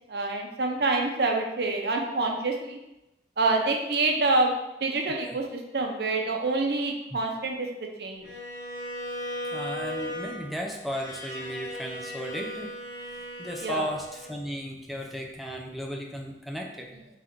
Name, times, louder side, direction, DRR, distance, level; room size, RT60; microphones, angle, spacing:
voice 1, 0.1-2.8 3.4-4.5 4.8-7.7 8.0-8.3 13.6-13.9, right 3 dB, 55° right, 2 dB, 0.6 m, -26 dB
voice 2, 5.0-5.4 7.1-7.2 9.5-12.7 13.0-17.1, equal, ahead, 0 dB, 0.4 m, -35 dB
Bowed string instrument, 8.2-14.5, equal, 70° left, 0.7 m, -37 dB
3.8 x 2.5 x 4.3 m, 0.92 s
head